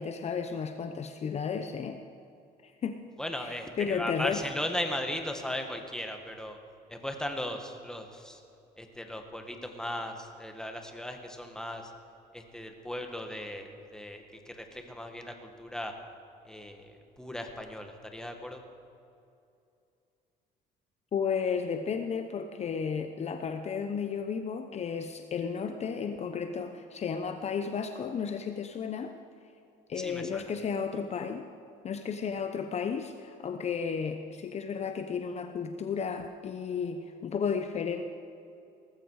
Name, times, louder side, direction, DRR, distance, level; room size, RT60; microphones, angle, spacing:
voice 1, 0.0-2.0 2.6-3.0 3.4-4.4 21.1-29.1 29.9-31.5 31.8-38.0, left 6 dB, 40° left, 7 dB, 0.8 m, -33 dB
voice 2, 3.2-6.6 6.9-8.4 8.8-11.9 12.3-15.9 16.4-18.6 30.0-30.4, left 1 dB, 5° left, 4 dB, 1.7 m, -37 dB
19.0 x 14.5 x 4.8 m, 2.6 s
cardioid pair, 110°, 17 cm